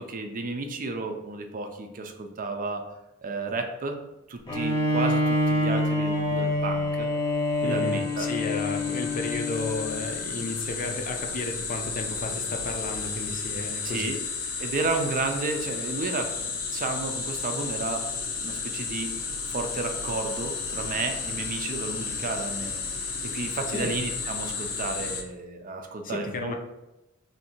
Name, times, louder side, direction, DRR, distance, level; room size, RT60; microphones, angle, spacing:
voice 1, 0.0-2.9 3.2-4.0 4.3-7.1 7.6-8.3 13.8-14.2 14.6-18.0 18.4-19.1 19.5-22.8 23.2-26.5, right 3 dB, 40° right, 5 dB, 0.5 m, -32 dB
Bowed string instrument, 4.5-10.1, left 1 dB, 15° left, 0.8 m, -26 dB
sound 1, 7.5-25.2, left 5 dB, 90° left, 0.6 m, -33 dB
voice 2, 7.6-14.1 23.7-23.9 26.0-26.6, left 2 dB, 40° left, 4 dB, 0.5 m, -33 dB
3.2 x 2.7 x 4.3 m, 0.96 s
head